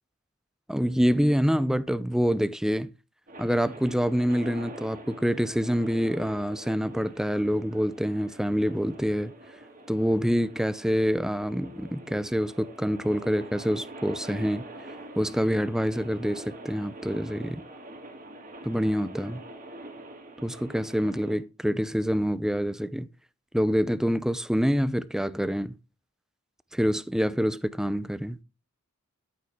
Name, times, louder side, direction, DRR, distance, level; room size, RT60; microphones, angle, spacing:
voice 1, 0.7-2.9 3.4-9.3 9.9-14.7 15.2-17.6 18.6-19.4 20.4-23.1 23.5-25.7 26.7-28.4, equal, ahead, 0.5 m, -26 dB
sound 1, 3.3-21.4, right 1 dB, 40° right, 2.7 m, -45 dB
13.0 x 8.6 x 3.6 m
head